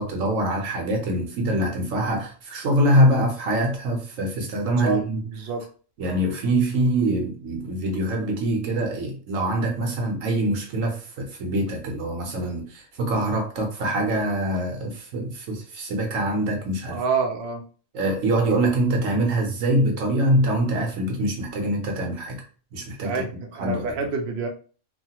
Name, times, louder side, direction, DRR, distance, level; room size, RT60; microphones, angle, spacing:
voice 1, 0.0-5.2 6.0-17.0 17.9-22.4 22.7-23.2 23.6-23.9, right 1 dB, 80° right, 1.2 m, -24 dB
voice 2, 5.3-5.6 16.9-17.6 23.0-24.5, right 4 dB, 60° right, 0.8 m, -27 dB
3.1 x 2.3 x 2.8 m
omnidirectional pair, 1.3 m